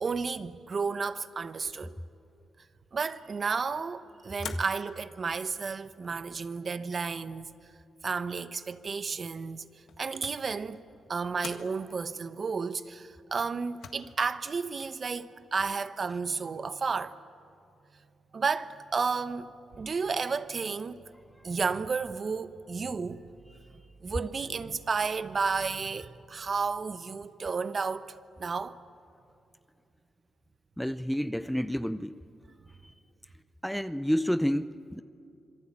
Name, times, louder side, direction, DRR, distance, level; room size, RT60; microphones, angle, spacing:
voice 1, 0.0-1.9 2.9-7.5 8.0-9.6 10.0-10.8 11.1-17.1 18.3-21.0 21.4-23.2 24.0-28.8, right 5 dB, 40° right, 0.9 m, -32 dB
sound 1, 4.4-5.1 5.8-6.4 9.6-10.6 11.4-11.8 13.4-13.9, left 7 dB, 70° left, 1.7 m, -44 dB
voice 2, 30.8-32.2 33.6-35.0, equal, ahead, 0.5 m, -29 dB
26.5 x 22.0 x 8.7 m
cardioid pair, 95°, 0 cm